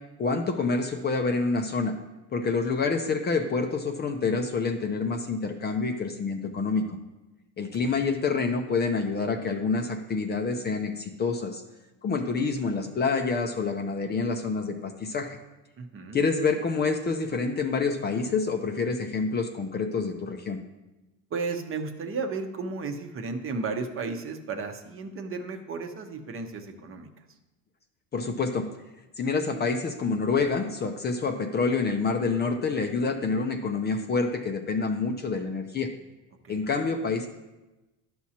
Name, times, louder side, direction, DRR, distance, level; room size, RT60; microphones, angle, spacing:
voice 1, 0.2-2.0 2.3-7.0 7.6-11.6 12.0-15.4 16.1-20.6 28.1-28.7 29.2-35.9 36.5-37.3, left 4 dB, 25° left, 5 dB, 0.6 m, -27 dB
voice 2, 7.7-8.0 15.8-16.2 21.3-27.1 36.4-36.7, right 4 dB, 35° right, 5 dB, 0.9 m, -34 dB
11.0 x 6.0 x 2.9 m, 1.0 s
cardioid pair, 120°, 38 cm